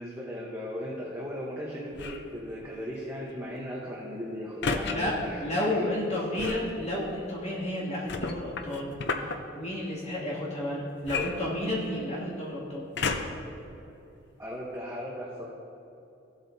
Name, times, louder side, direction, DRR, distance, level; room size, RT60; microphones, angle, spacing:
voice 1, 0.0-6.6 14.4-15.4, equal, 15° right, -5 dB, 0.9 m, -37 dB
sound 1, 1.9-2.3 4.6-5.0 6.4-6.7 8.1-9.4 11.0-12.0 12.9-13.5 14.2-14.3, left 4 dB, 60° left, 0.6 m, -32 dB
voice 2, 4.9-12.9, left 1 dB, 35° left, -7 dB, 2.3 m, -32 dB
15.5 x 8.0 x 2.7 m, 2.8 s
head